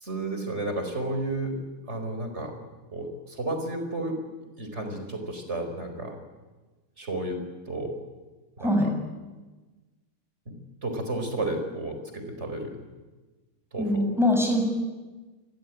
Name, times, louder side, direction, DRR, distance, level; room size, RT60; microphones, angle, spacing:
voice 1, 0.0-1.6 1.9-2.6 2.9-4.2 4.6-6.2 7.0-7.4 7.7-8.0 8.6-8.8 10.5-12.8 13.7-14.0, right 2 dB, 30° right, 6 dB, 4.7 m, -32 dB
voice 2, 8.6-8.9 13.8-14.7, left 1 dB, ahead, 2 dB, 7.2 m, -23 dB
28.0 x 23.0 x 9.2 m, 1.2 s
omnidirectional pair, 2.2 m